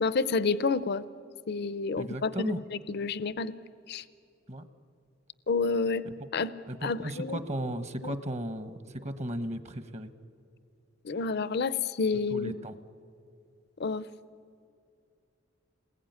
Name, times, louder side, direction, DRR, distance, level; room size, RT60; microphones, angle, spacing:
voice 1, 0.0-1.0 1.5-2.6 2.9-3.5 3.9-4.0 5.5-6.0 6.3-6.5 6.8-7.4 8.0-8.2 11.0-12.5 13.8-14.1, left 4 dB, 55° left, 16 dB, 0.6 m, -29 dB
voice 2, 2.0-2.6 4.5-4.6 6.7-10.1 12.3-12.8, right 1 dB, 35° right, 11 dB, 1.2 m, -35 dB
28.5 x 20.5 x 9.5 m, 2.4 s
head